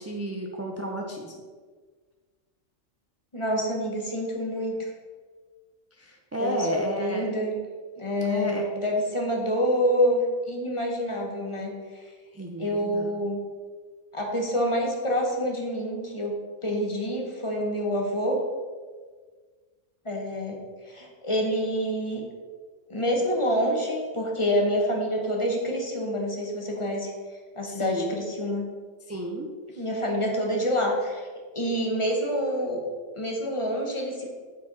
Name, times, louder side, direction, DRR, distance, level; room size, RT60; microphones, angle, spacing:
voice 1, 0.0-1.3 6.0-7.2 8.2-8.7 12.3-13.1 27.8-28.1 29.1-29.8, right 1 dB, 25° right, 0 dB, 0.3 m, -32 dB
voice 2, 3.3-4.9 6.4-7.6 8.0-11.7 12.6-13.4 14.1-16.4 16.6-18.4 20.0-20.6 20.9-22.2 22.9-27.1 27.6-28.6 29.8-31.2 31.5-32.8 33.2-34.3, equal, 25° left, -1 dB, 1.1 m, -27 dB
7.4 x 4.5 x 4.1 m, 1.5 s
omnidirectional pair, 1.3 m